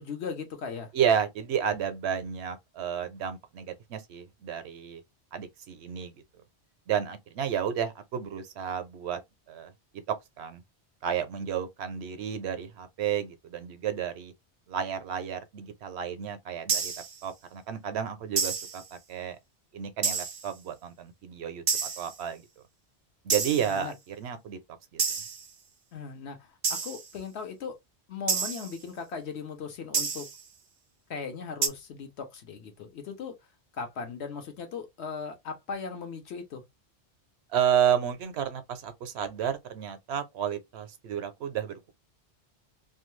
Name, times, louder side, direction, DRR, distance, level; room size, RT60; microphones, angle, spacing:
voice 1, 0.0-0.9 23.5-23.9 25.9-27.8 28.1-30.3 31.1-33.4 33.7-36.6, left 5 dB, 70° left, 1.1 m, -38 dB
voice 2, 0.9-5.0 5.3-6.1 6.9-9.2 9.5-10.6 11.0-14.3 14.7-16.9 17.2-19.4 19.7-22.4 23.2-24.6 24.9-25.2 37.5-41.9, right 9 dB, 70° right, 0.8 m, -31 dB
sound 1, 16.7-17.2 18.4-18.9 20.0-20.5 21.7-22.2 23.3-23.8 25.0-25.5 26.6-27.1 28.3-28.8 29.9-30.4 31.6-31.7, right 5 dB, 50° right, 0.5 m, -29 dB
2.6 x 2.2 x 3.0 m
omnidirectional pair, 1.2 m